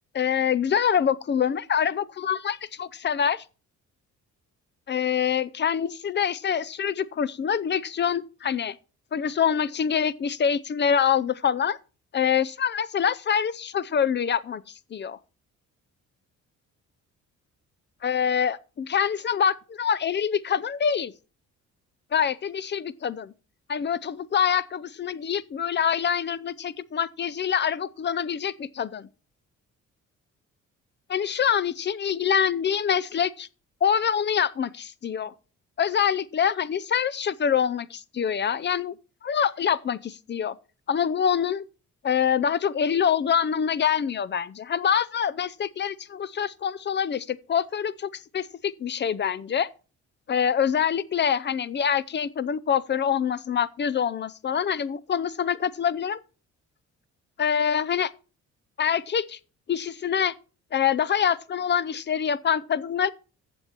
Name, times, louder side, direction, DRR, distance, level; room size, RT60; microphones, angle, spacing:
voice 1, 0.1-3.4 4.9-8.8 9.1-11.8 12.1-14.6 14.9-15.2 18.0-21.1 22.1-23.3 23.7-29.1 31.1-33.5 33.8-35.3 35.8-38.9 39.2-40.6 40.9-41.6 42.0-49.7 50.3-56.2 57.4-58.1 58.8-59.4 59.7-60.3 60.7-63.1, left 8 dB, 35° left, 0.6 m, -25 dB
16.0 x 7.1 x 3.0 m
cardioid pair, 90°, 30 cm